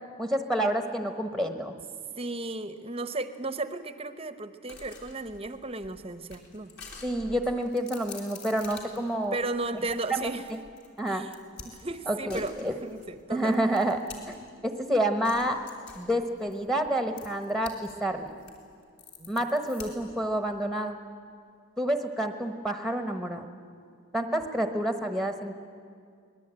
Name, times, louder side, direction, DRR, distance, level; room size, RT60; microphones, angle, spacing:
voice 1, 0.2-1.7 7.0-9.4 10.1-10.2 10.5-10.6 11.0-11.3 12.1-12.8 13.3-14.0 14.3-14.4 14.6-15.6 15.9-18.3 19.3-21.0 21.8-23.5 24.1-25.5, right 1 dB, ahead, 6 dB, 1.1 m, -28 dB
voice 2, 2.2-6.7 9.3-10.4 11.1-11.4 11.6-12.5 12.8-13.6 19.2-19.3, right 2 dB, 25° right, 11 dB, 0.8 m, -34 dB
sound 1, 4.7-14.6 15.2-17.9 18.2-20.2, left 4 dB, 50° left, 3.6 m, -48 dB
24.5 x 19.5 x 8.9 m, 2.2 s
head